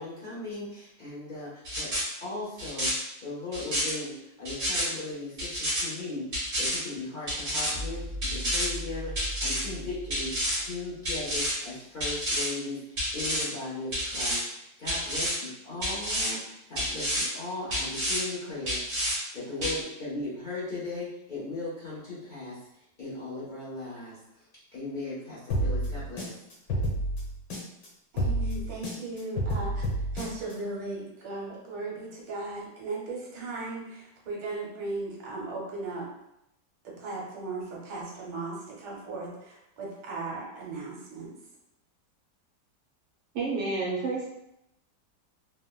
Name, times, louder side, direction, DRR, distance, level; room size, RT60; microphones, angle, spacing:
voice 1, 0.0-1.9 2.2-2.9 3.2-10.3 10.6-22.6 23.0-24.4 24.7-26.3, left 2 dB, 60° left, -9 dB, 0.5 m, -38 dB
sound 1, 1.6-2.0 2.6-2.9 3.5-3.9 4.4-4.8 5.4-5.8 6.3-6.8 7.3-7.7 8.2-8.7 9.2-9.6 10.1-10.6 11.0-11.5 12.0-12.5 13.0-13.4 13.9-14.4 14.8-15.3 15.8-16.3 16.8-17.3 17.7-18.2 18.7-19.2 19.6-19.8, equal, 40° right, 0.9 m, -29 dB
sound 2, 7.7-11.2, equal, 5° right, 0.8 m, -39 dB
sound 3, 25.5-27.9 28.2-30.5, right 1 dB, 80° left, 1.5 m, -29 dB
voice 2, 28.1-29.8 30.1-36.1 36.8-41.3, right 3 dB, 90° right, -3 dB, 1.4 m, -37 dB
voice 3, 43.3-44.3, right 3 dB, 75° right, -4 dB, 1.4 m, -29 dB
3.3 x 2.1 x 2.3 m, 0.83 s
omnidirectional pair, 1.9 m